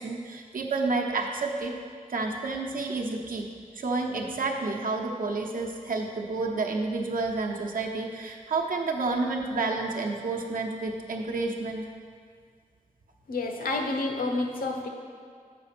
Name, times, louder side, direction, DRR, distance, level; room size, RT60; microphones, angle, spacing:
voice 1, 0.0-1.7 2.1-3.5 3.7-11.8, right 3 dB, 75° right, 1 dB, 0.8 m, -30 dB
voice 2, 13.3-14.9, left 2 dB, 80° left, 3 dB, 0.9 m, -29 dB
6.9 x 4.9 x 6.0 m, 2.1 s
wide cardioid pair, 110°, 14 cm